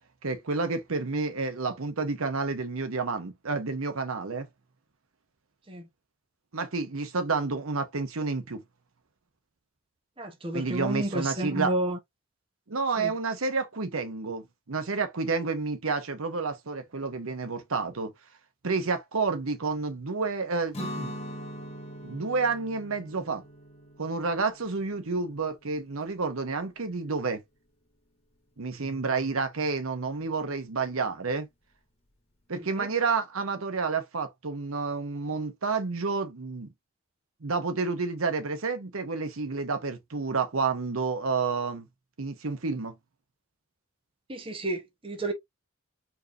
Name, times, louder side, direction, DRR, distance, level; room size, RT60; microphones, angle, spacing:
voice 1, 0.2-4.5 6.5-8.6 10.5-11.7 12.7-18.1 18.6-21.1 22.0-23.4 24.0-27.4 28.6-31.5 32.5-36.7 37.4-41.9 42.2-43.0, right 4 dB, 80° right, 0.9 m, -30 dB
voice 2, 10.2-12.0 13.0-13.1 32.5-32.9 44.3-45.3, right 1 dB, 25° right, 0.8 m, -31 dB
Guitar, 20.7-26.5, equal, 30° left, 1.2 m, -42 dB
4.5 x 3.0 x 2.5 m
head